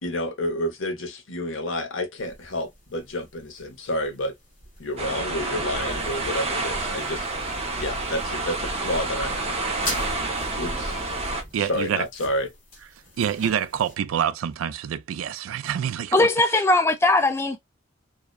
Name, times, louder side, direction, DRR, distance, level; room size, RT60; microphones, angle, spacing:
voice 1, 0.0-4.3 4.8-7.3 7.8-9.6 10.5-11.0 11.6-12.5, left 1 dB, 80° left, 0.8 m, -29 dB
sound 1, 2.2-13.9, left 2 dB, 40° left, 1.0 m, -43 dB
sound 2, 5.0-11.4, right 2 dB, 30° right, 0.6 m, -29 dB
voice 2, 11.5-12.0 13.2-16.3, right 9 dB, 90° right, 0.3 m, -26 dB
voice 3, 16.1-17.6, left 2 dB, 10° left, 0.3 m, -19 dB
2.7 x 2.1 x 2.2 m
head